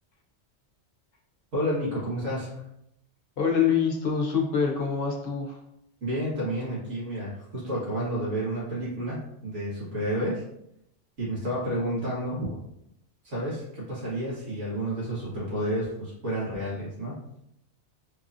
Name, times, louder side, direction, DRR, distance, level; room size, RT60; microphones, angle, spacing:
voice 1, 1.5-2.6 6.0-10.4 11.2-12.6 13.2-17.2, right 1 dB, 85° right, -8 dB, 1.9 m, -30 dB
voice 2, 3.4-5.6, left 6 dB, 55° left, 1 dB, 0.8 m, -25 dB
4.7 x 2.4 x 2.6 m, 0.79 s
omnidirectional pair, 1.2 m